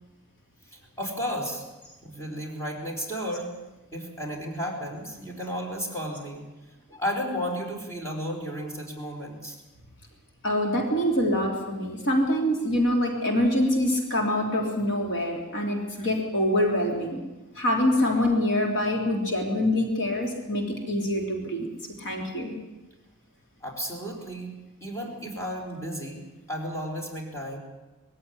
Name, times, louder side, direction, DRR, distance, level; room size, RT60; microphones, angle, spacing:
voice 1, 0.7-1.7 2.0-3.5 3.9-6.4 6.9-9.6 12.1-12.2 23.6-24.5 24.8-27.6, equal, 15° left, 0 dB, 4.8 m, -33 dB
voice 2, 10.4-17.2 17.6-21.7 22.0-22.5, left 1 dB, 55° left, 1 dB, 3.5 m, -25 dB
21.0 x 15.5 x 9.7 m, 1.1 s
head